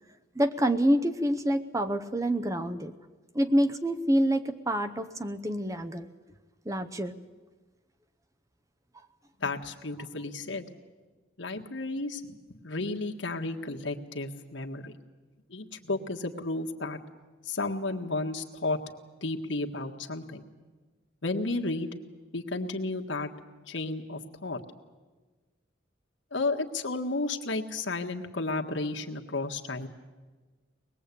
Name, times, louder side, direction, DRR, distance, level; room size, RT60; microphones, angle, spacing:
voice 1, 0.3-2.9 3.3-6.1 6.7-7.2, equal, 15° right, 8 dB, 0.8 m, -27 dB
voice 2, 9.4-10.7 11.4-14.9 15.5-17.0 17.4-18.8 19.2-20.4 21.2-21.9 22.3-23.3 23.7-24.6 26.3-29.9, left 2 dB, 75° left, 3 dB, 1.7 m, -32 dB
24.0 x 20.0 x 8.5 m, 1.3 s
head